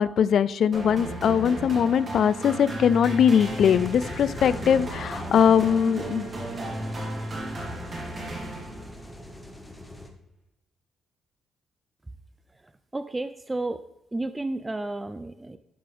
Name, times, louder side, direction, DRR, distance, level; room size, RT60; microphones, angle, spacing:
voice 1, 0.0-6.3, left 8 dB, 65° left, 17 dB, 0.3 m, -21 dB
sound 1, 0.7-9.0, right 1 dB, 40° right, 2.9 m, -34 dB
sound 2, 3.4-10.1, left 1 dB, 5° left, 1.3 m, -42 dB
voice 2, 12.9-13.8 14.1-15.6, right 2 dB, 15° right, 11 dB, 0.4 m, -31 dB
12.0 x 5.3 x 3.4 m, 0.85 s
cardioid pair, 90°, 0 cm